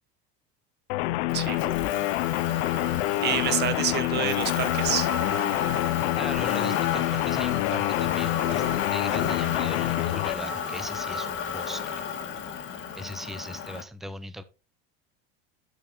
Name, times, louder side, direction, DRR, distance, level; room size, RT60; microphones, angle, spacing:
sound 1, 0.9-10.3, left 18 dB, 85° left, 0.6 m, -27 dB
Motor vehicle (road), 1.3-13.8, left 7 dB, 40° left, 1.7 m, -32 dB
voice 1, 3.2-5.1, right 10 dB, 35° right, 12 dB, 1.1 m, -28 dB
voice 2, 6.2-12.0 12.9-14.4, right 1 dB, ahead, 12 dB, 0.5 m, -39 dB
12.0 x 4.9 x 3.8 m, 0.32 s
cardioid pair, 145°, 31 cm